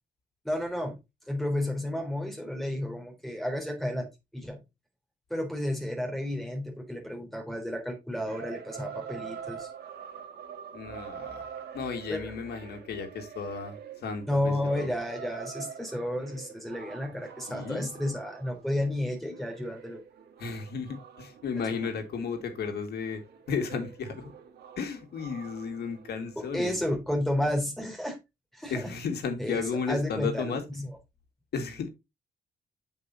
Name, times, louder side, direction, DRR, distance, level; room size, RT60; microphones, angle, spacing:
voice 1, 0.4-1.0 1.3-4.1 4.3-4.6 5.3-9.7 12.1-12.3 14.3-20.0 21.6-21.7 26.4-28.2 28.5-28.9 29.4-31.0, left 1 dB, ahead, 3.8 m, -32 dB
sound 1, 8.3-26.8, right 8 dB, 85° right, 1.6 m, -45 dB
voice 2, 10.7-11.5 11.7-14.9 17.5-17.9 20.4-23.2 23.5-24.3 24.8-26.8 28.7-30.6 31.5-31.9, left 5 dB, 75° left, 2.2 m, -34 dB
7.8 x 5.4 x 4.1 m
cardioid pair, 110°, 17 cm